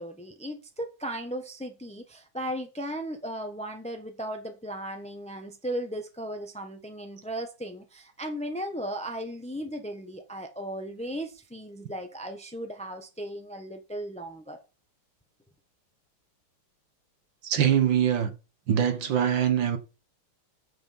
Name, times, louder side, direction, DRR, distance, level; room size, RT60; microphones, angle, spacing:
voice 1, 0.0-14.6, right 1 dB, 5° left, 0.4 m, -36 dB
voice 2, 17.4-18.3 18.7-19.8, right 9 dB, 60° right, 2.0 m, -23 dB
9.0 x 6.9 x 5.5 m
omnidirectional pair, 2.4 m